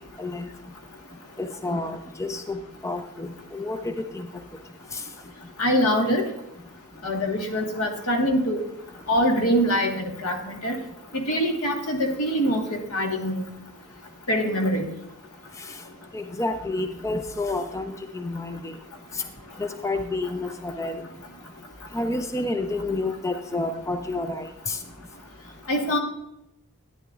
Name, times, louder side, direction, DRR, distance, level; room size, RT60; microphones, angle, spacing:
voice 1, 0.2-0.5 1.4-4.3 4.9-5.0 15.7-15.8 16.1-18.7 19.1-19.2 19.6-21.0 21.9-24.8, left 2 dB, 15° left, 8 dB, 0.4 m, -29 dB
voice 2, 5.6-6.3 7.0-8.6 9.1-10.7 11.1-13.4 14.3-14.9 25.7-26.0, equal, 90° left, 2 dB, 1.6 m, -24 dB
12.0 x 9.4 x 2.5 m, 0.85 s
head